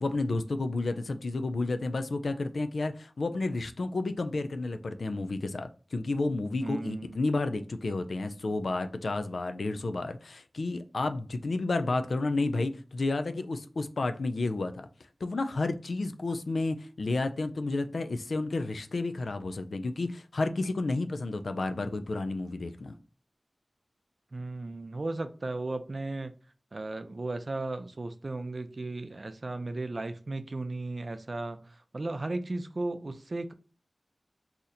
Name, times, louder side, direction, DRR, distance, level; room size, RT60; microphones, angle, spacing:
voice 1, 0.0-14.9 15.2-22.9, left 2 dB, 90° left, 0.3 m, -31 dB
voice 2, 6.6-7.2 24.3-26.3 26.7-33.5, right 2 dB, 55° right, 0.4 m, -35 dB
2.8 x 2.5 x 4.0 m
wide cardioid pair, 70°, 0 cm